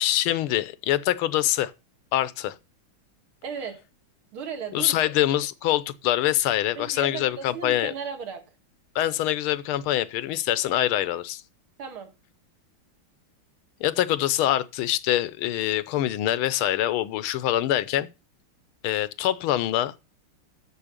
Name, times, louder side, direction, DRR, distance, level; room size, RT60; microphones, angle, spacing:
voice 1, 0.0-1.7 2.1-2.5 4.7-7.9 8.9-11.4 13.8-18.1 18.8-19.9, left 13 dB, 85° left, 1.6 m, -24 dB
voice 2, 3.4-3.8 4.3-5.0 6.8-8.4 11.8-12.1, right 6 dB, 80° right, 2.6 m, -35 dB
7.5 x 7.0 x 6.6 m
omnidirectional pair, 2.3 m